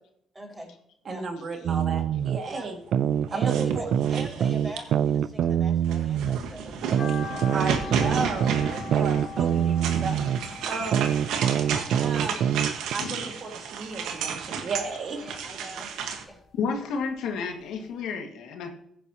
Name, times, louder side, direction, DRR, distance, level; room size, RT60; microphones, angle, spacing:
voice 1, 0.3-0.7 1.1-1.2 2.5-2.7 3.3-7.5 8.8-9.0 10.6-11.1 15.2-16.4, equal, 15° right, -1 dB, 5.4 m, -42 dB
voice 2, 1.1-2.8 3.3-3.9 7.5-10.2 10.7-11.1 12.0-12.5 12.9-15.2, right 4 dB, 55° right, 3 dB, 2.2 m, -34 dB
sound 1, 1.7-2.4 2.9-6.4 6.9-10.4 10.9-12.9, right 9 dB, 70° right, 0.4 m, -24 dB
sound 2, 3.3-5.1 5.8-16.2, right 6 dB, 90° right, 1.5 m, -33 dB
sound 3, 7.0-13.3 13.6-14.8 15.1-16.6 16.9-17.0 17.5-17.6 17.8-17.9, left 6 dB, 55° left, 2.9 m, -42 dB
voice 3, 12.9-13.3 16.5-18.7, left 5 dB, 90° left, 2 dB, 2.0 m, -31 dB
15.5 x 9.8 x 3.0 m, 0.72 s
cardioid pair, 90°, 0 cm